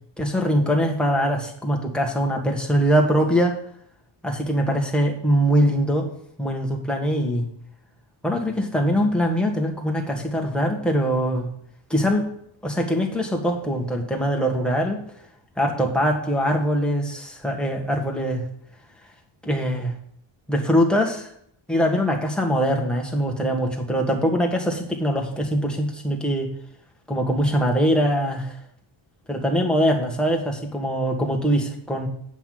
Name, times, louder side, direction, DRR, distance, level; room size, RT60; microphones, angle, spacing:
voice 1, 0.2-3.6 4.2-6.1 6.4-7.5 8.2-11.5 11.9-12.3 12.6-15.0 15.6-18.4 19.4-19.9 20.5-21.3 21.7-26.5 27.1-28.6 29.3-32.1, equal, ahead, 0 dB, 1.5 m, -22 dB
8.1 x 5.6 x 7.7 m, 0.67 s
cardioid pair, 155°, 50 cm